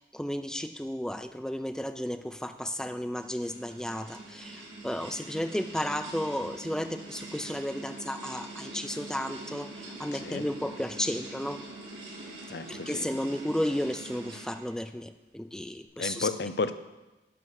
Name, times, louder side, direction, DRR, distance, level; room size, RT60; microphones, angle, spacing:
voice 1, 0.0-11.6 12.7-16.3, equal, 5° left, 8 dB, 0.4 m, -33 dB
sound 1, 2.7-14.8, right 2 dB, 80° right, 3.3 m, -44 dB
voice 2, 10.1-10.4 12.5-13.1 16.0-16.7, left 4 dB, 60° left, 12 dB, 0.5 m, -32 dB
11.0 x 4.8 x 6.4 m, 1.1 s
head